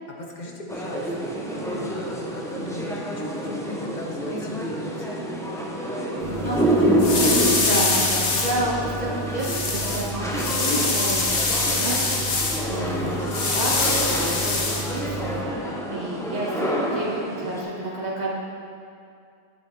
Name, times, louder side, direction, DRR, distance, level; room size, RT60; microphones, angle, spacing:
voice 1, 0.2-5.2 6.1-7.0 12.8-13.3 15.1-15.5, left 1 dB, 40° left, 0 dB, 1.2 m, -38 dB
sound 1, 0.7-17.6, right 1 dB, 5° left, 0.8 m, -28 dB
voice 2, 5.7-6.7 7.0-7.1 7.5-18.3, right 1 dB, 40° right, -6 dB, 2.0 m, -31 dB
sound 2, 6.2-15.4, left 3 dB, 80° left, 1.4 m, -25 dB
11.0 x 8.7 x 3.6 m, 2.3 s
omnidirectional pair, 1.2 m